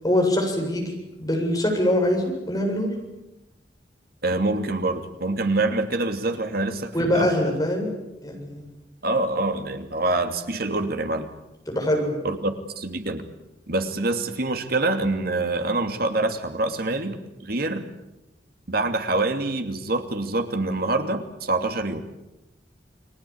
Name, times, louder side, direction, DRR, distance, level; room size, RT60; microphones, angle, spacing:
voice 1, 0.0-0.9 1.2-3.0 6.9-8.6 11.7-12.1, left 1 dB, 20° left, 1 dB, 7.9 m, -23 dB
voice 2, 4.2-7.3 9.0-11.3 12.2-13.3 13.7-17.9 18.7-22.0, right 2 dB, 55° right, 7 dB, 2.7 m, -25 dB
30.0 x 21.5 x 8.8 m, 0.95 s
head